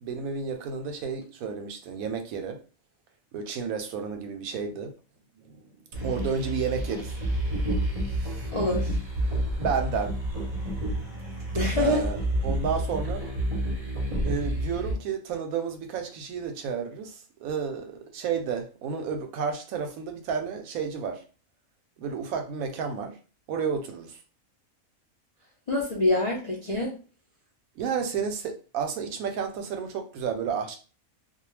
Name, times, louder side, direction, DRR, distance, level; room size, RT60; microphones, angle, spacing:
voice 1, 0.0-2.6 3.3-4.9 5.4-5.7 6.0-7.1 8.2-8.4 9.6-10.1 11.7-12.2 12.4-13.3 14.2-21.2 22.0-23.2 23.5-24.2 27.8-30.8, right 6 dB, 85° right, 1.0 m, -31 dB
sound 1, 5.9-14.9, right 1 dB, 30° right, 0.7 m, -29 dB
voice 2, 8.5-9.0 11.5-12.1 25.7-26.9, left 2 dB, 50° left, 0.4 m, -26 dB
2.3 x 2.2 x 3.1 m
omnidirectional pair, 1.4 m